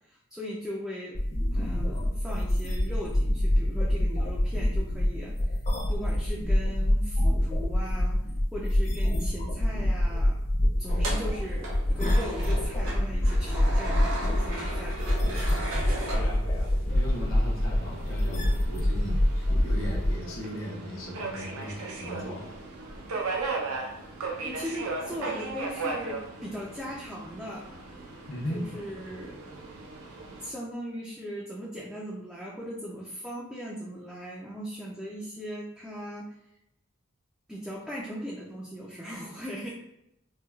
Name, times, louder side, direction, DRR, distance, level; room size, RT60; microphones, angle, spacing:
voice 1, 0.1-1.2 1.5-5.6 5.9-8.2 8.5-10.4 10.8-15.0 24.4-27.7 28.5-29.4 30.4-36.3 37.5-39.7, equal, ahead, -6 dB, 0.3 m, -38 dB
sound 1, 1.1-20.1, left 1 dB, 40° left, 0.7 m, -26 dB
sound 2, 10.9-16.9, right 1 dB, 70° right, 0.9 m, -36 dB
voice 2, 16.0-22.5 28.3-28.7, equal, 70° left, -3 dB, 0.8 m, -38 dB
Subway metro underground, 16.9-30.5, right 3 dB, 85° right, 0.6 m, -37 dB
4.5 x 2.2 x 2.3 m, 0.82 s
head